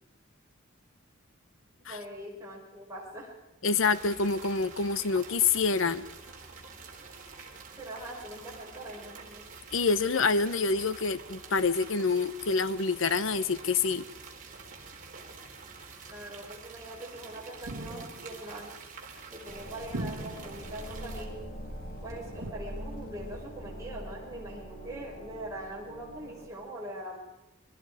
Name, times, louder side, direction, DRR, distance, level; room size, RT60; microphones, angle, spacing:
voice 1, 1.9-3.3 7.8-9.5 16.1-18.8 19.3-21.3 22.0-27.2, right 1 dB, 15° right, -4 dB, 5.8 m, -42 dB
voice 2, 3.6-6.0 9.7-14.1, left 4 dB, 65° left, 15 dB, 0.9 m, -27 dB
sound 1, 3.8-21.2, right 4 dB, 40° right, 3.5 m, -47 dB
sound 2, 17.6-18.4 19.9-20.7 22.4-22.5, right 1 dB, 75° right, 1.5 m, -38 dB
sound 3, 19.5-26.5, equal, 45° left, 6.3 m, -43 dB
29.0 x 21.0 x 4.9 m, 1.0 s
head